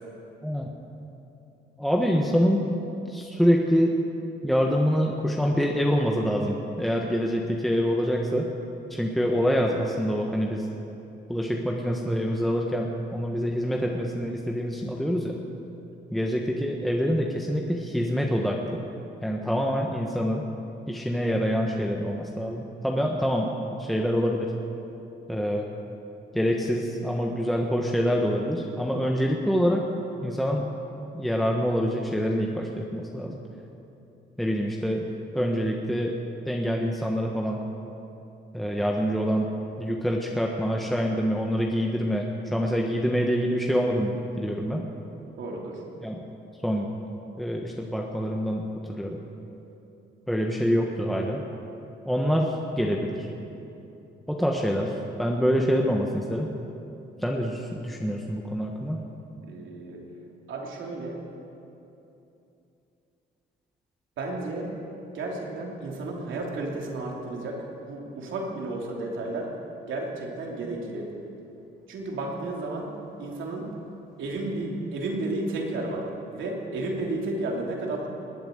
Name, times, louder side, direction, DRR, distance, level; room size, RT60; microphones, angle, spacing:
voice 1, 1.8-2.6 3.1-3.9 4.4-8.5 8.9-10.7 11.3-15.4 16.1-18.8 19.2-20.5 20.9-23.5 23.8-24.5 25.3-25.7 26.3-29.8 30.2-30.7 31.1-33.4 34.4-35.1 35.3-36.1 36.5-37.6 38.5-39.5 39.8-44.8 46.0-46.2 46.6-46.8 47.4-49.2 50.3-51.4 52.1-53.3 54.3-54.9 55.2-56.5 57.2-59.0, equal, ahead, 0 dB, 1.3 m, -26 dB
voice 2, 45.4-45.8 59.5-60.0 60.5-61.2 64.2-64.7 65.1-67.6 67.9-69.5 69.9-71.1 71.9-72.9 73.2-73.6 74.2-76.0 76.3-78.1, right 2 dB, 75° right, -1 dB, 3.1 m, -32 dB
20.0 x 8.9 x 8.0 m, 2.9 s
cardioid pair, 90°, 20 cm